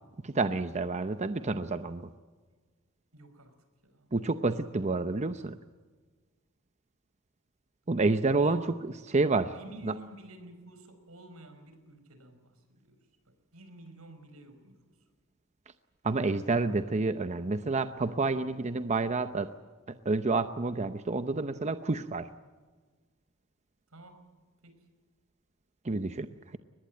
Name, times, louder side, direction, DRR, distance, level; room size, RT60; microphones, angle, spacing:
voice 1, 0.2-2.1 4.1-5.6 7.9-8.6 9.1-9.5 9.8-9.9 16.0-19.5 20.1-22.3 25.8-26.3, right 3 dB, 30° right, 10 dB, 0.7 m, -29 dB
voice 2, 3.1-3.5 3.8-4.1 8.4-8.7 9.3-13.0 13.2-14.8 23.9-24.4 24.6-24.9 25.9-26.0, right 1 dB, 80° right, 9 dB, 4.9 m, -51 dB
23.0 x 20.5 x 9.1 m, 1.4 s
head